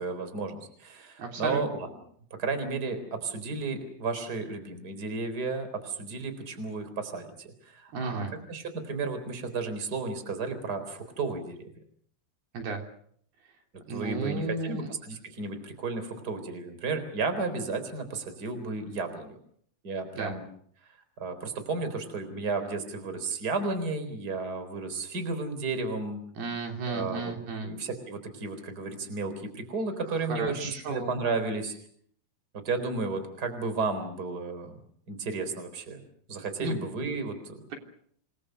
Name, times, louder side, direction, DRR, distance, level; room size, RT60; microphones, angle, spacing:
voice 1, 0.0-1.9 2.4-8.2 8.5-11.6 13.9-19.4 19.8-20.4 21.2-26.2 26.9-27.3 27.6-31.7 32.5-34.8 35.1-36.0 36.3-37.6, right 3 dB, 25° right, 9 dB, 4.1 m, -33 dB
voice 2, 1.2-1.6 7.9-8.3 12.5-12.8 13.9-14.9 20.2-20.3 26.4-27.7 30.3-31.2 36.6-36.8, right 3 dB, 70° right, 3 dB, 5.3 m, -33 dB
28.0 x 20.5 x 6.7 m, 0.62 s
omnidirectional pair, 4.7 m